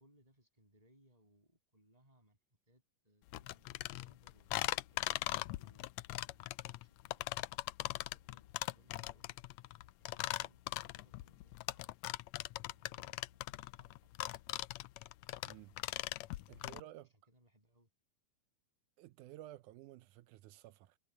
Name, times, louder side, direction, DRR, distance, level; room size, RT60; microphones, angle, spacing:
voice 1, 0.0-2.4 2.7-5.9 6.3-7.3 7.9-9.4 10.0-12.0 12.6-14.6 16.5-17.9, right 1 dB, 10° right, 7.2 m, -70 dB
sound 1, 3.3-16.8, left 17 dB, 80° left, 1.6 m, -40 dB
voice 2, 15.5-15.8 16.5-17.1 19.0-21.0, right 14 dB, 80° right, 2.1 m, -54 dB
omnidirectional pair, 3.5 m